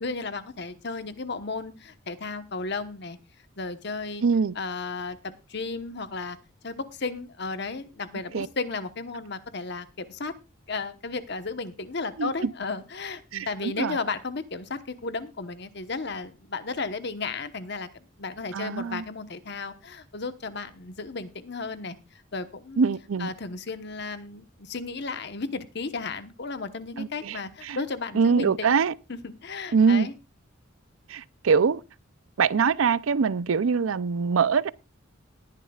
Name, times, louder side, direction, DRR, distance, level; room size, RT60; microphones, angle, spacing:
voice 1, 0.0-3.2 3.6-4.2 4.6-6.4 6.6-10.3 10.7-22.0 22.3-22.9 23.2-28.8 29.1-30.1, left 4 dB, 55° left, 1.1 m, -34 dB
voice 2, 4.2-4.5 8.3-8.5 12.2-12.5 13.3-14.0 18.5-19.0 22.8-23.3 27.0-27.8 28.1-28.9 29.7-30.1 31.1-31.8 32.4-34.7, right 5 dB, 85° right, 0.5 m, -23 dB
19.5 x 10.5 x 2.4 m
head